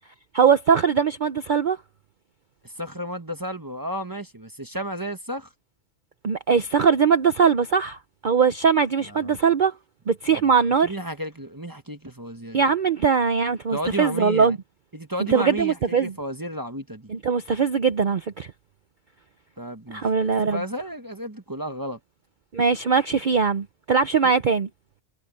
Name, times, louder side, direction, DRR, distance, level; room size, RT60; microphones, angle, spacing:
voice 1, 0.3-1.8 6.2-9.7 10.1-10.9 12.5-14.6 15.3-16.1 17.1-18.5 19.9-20.6 22.5-24.7, right 6 dB, 45° right, 0.7 m, -21 dB
voice 2, 2.6-5.5 9.1-9.3 10.3-10.4 10.8-12.6 13.7-14.6 14.9-17.1 19.6-22.0 24.2-24.3, equal, 15° right, 1.1 m, -33 dB
omnidirectional pair, 1.3 m